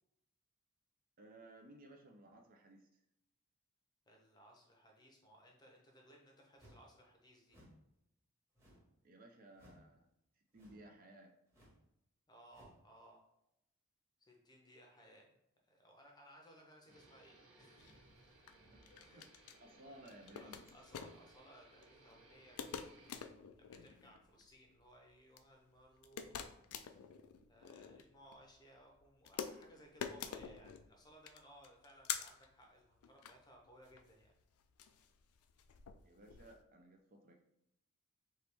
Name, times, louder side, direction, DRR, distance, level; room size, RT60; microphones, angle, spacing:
voice 1, 1.2-2.9 9.0-10.1 10.3-11.3 18.7-19.3 19.5-20.6 36.0-37.4, right 1 dB, 40° right, 2 dB, 0.5 m, -58 dB
voice 2, 4.1-7.6 12.3-13.2 14.2-15.3 15.6-18.0 18.9-19.3 19.8-19.9 20.4-22.9 23.6-27.1 27.5-34.3, equal, 20° left, 1 dB, 0.7 m, -62 dB
sound 1, 6.6-6.9 7.5-7.8 8.6-9.0 9.5-9.9 10.5-10.9 11.5-11.8 12.5-12.8, equal, 15° right, 1.3 m, -63 dB
sound 2, 16.9-23.3, right 2 dB, 70° right, 0.9 m, -64 dB
sound 3, 17.8-36.6, left 7 dB, 75° left, 0.4 m, -49 dB
4.6 x 3.0 x 3.3 m, 0.84 s
head